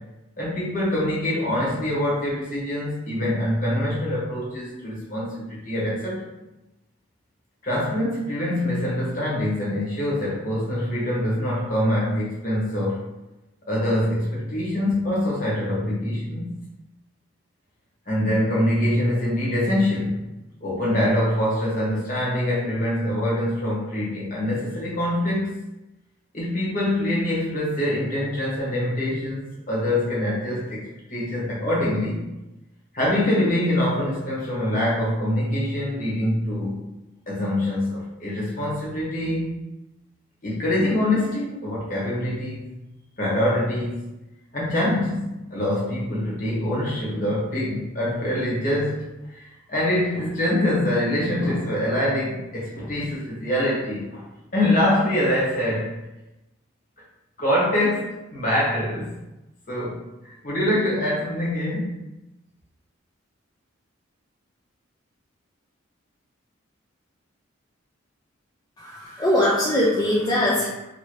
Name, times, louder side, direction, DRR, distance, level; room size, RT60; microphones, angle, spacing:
voice 1, 0.4-6.2 7.6-13.0 13.6-16.6 18.1-20.2 20.6-25.6 26.3-30.8 31.1-32.3 32.9-36.9 37.3-39.6 40.4-42.7 43.2-44.1 44.5-49.0 49.3-54.3 54.5-55.9 57.4-59.1 59.7-62.0, left 1 dB, 40° left, -6 dB, 1.1 m, -24 dB
voice 2, 68.8-70.7, left 1 dB, 20° left, -7 dB, 0.5 m, -21 dB
2.7 x 2.6 x 3.1 m, 0.96 s
head